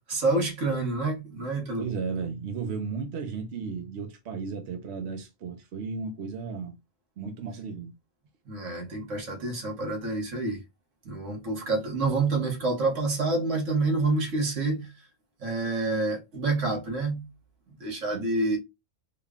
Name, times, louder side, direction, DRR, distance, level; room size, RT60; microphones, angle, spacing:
voice 1, 0.0-1.9 8.5-10.6 11.1-14.9 15.4-17.3 17.8-18.6, right 3 dB, 85° right, 1.7 m, -28 dB
voice 2, 1.8-6.8 7.2-7.9 18.1-18.3, right 5 dB, 65° right, 0.9 m, -34 dB
3.7 x 2.2 x 3.5 m
omnidirectional pair, 1.3 m